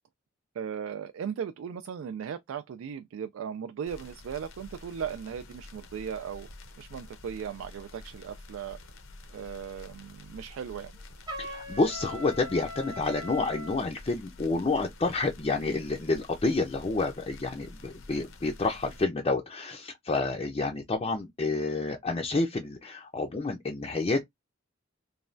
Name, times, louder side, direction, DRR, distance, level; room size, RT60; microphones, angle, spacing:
voice 1, 0.5-6.5 6.8-8.8 9.3-11.0, right 7 dB, 90° right, 0.3 m, -37 dB
sound 1, 3.9-19.0, left 2 dB, 80° left, 0.7 m, -49 dB
Trumpet, 11.3-13.8, equal, 20° right, 0.6 m, -40 dB
voice 2, 11.4-24.3, left 3 dB, 30° left, 0.4 m, -29 dB
3.1 x 2.2 x 2.4 m
head